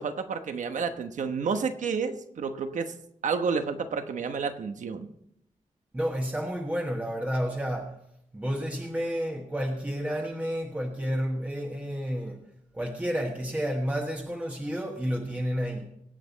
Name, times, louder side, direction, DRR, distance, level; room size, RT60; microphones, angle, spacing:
voice 1, 0.0-2.9 3.2-5.1, right 5 dB, 70° right, 1.1 m, -30 dB
voice 2, 5.9-8.0 8.3-12.4 12.7-15.8, equal, 10° right, 1.2 m, -30 dB
24.0 x 8.8 x 4.1 m
wide cardioid pair, 170°, 13 cm